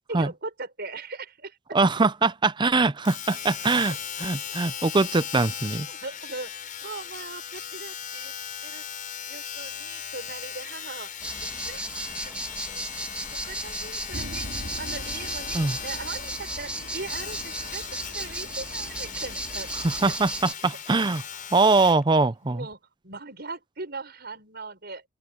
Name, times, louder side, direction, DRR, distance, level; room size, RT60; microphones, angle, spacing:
voice 1, 0.1-1.8 5.9-8.3 8.6-8.8 9.3-11.1 11.6-12.0 12.5-12.8 13.4-17.8 18.1-20.0 20.4-20.5 21.8-21.9 22.2-25.0, right 3 dB, 50° right, 6.5 m, -39 dB
voice 2, 1.7-5.9 15.5-15.8 19.8-21.2 21.5-22.7, right 3 dB, 20° right, 0.5 m, -22 dB
Domestic sounds home sounds, 3.0-22.0 22.7-22.8, left 8 dB, 40° left, 6.2 m, -38 dB
sound 1, 11.2-20.5, right 2 dB, 5° right, 1.9 m, -35 dB
sound 2, 14.1-20.1, right 1 dB, 80° right, 2.9 m, -42 dB
open air
head